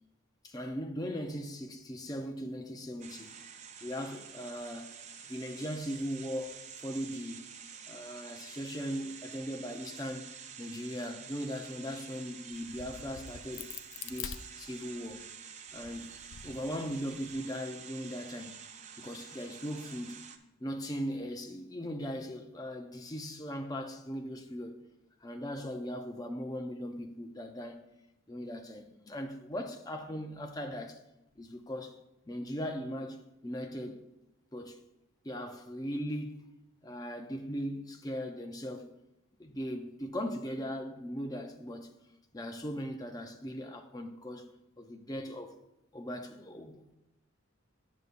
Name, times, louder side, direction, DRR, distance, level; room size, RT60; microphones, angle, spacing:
voice 1, 0.4-3.3 3.8-5.0 5.3-7.4 7.9-10.3 10.6-13.7 14.0-15.2 15.7-18.6 19.0-20.2 20.6-24.8 25.2-27.8 28.3-31.0 31.4-32.0 32.3-34.0 34.5-34.8 35.2-36.5 36.8-38.9 39.4-41.9 42.3-44.5 44.8-45.6 45.9-46.9, equal, 20° left, 0.5 m, -39 dB
sound 1, 3.0-20.4, right 7 dB, 35° right, 0.4 m, -49 dB
Crack, 12.5-15.2 15.7-17.3, left 8 dB, 70° left, 0.4 m, -46 dB
9.3 x 6.7 x 2.5 m
head